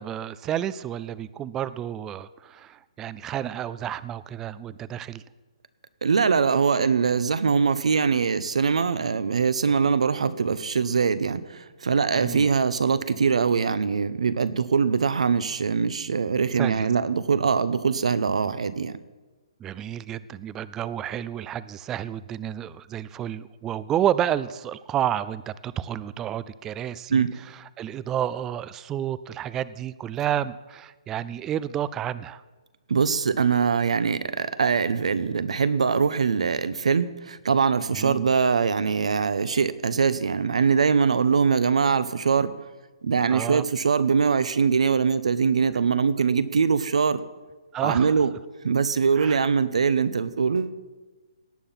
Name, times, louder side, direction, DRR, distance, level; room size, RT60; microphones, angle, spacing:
voice 1, 0.0-5.2 12.2-12.5 16.6-16.9 19.6-27.2 27.8-32.4 37.9-38.3 43.3-43.7 47.7-48.1 49.2-49.4, right 10 dB, 10° right, 17 dB, 0.3 m, -30 dB
voice 2, 6.0-19.0 27.1-27.3 32.9-42.5 43.0-47.2 47.8-48.3 48.6-50.8, right 5 dB, 75° right, 14 dB, 1.0 m, -22 dB
17.5 x 9.2 x 5.8 m, 1.3 s
hypercardioid pair, 160°, 3 cm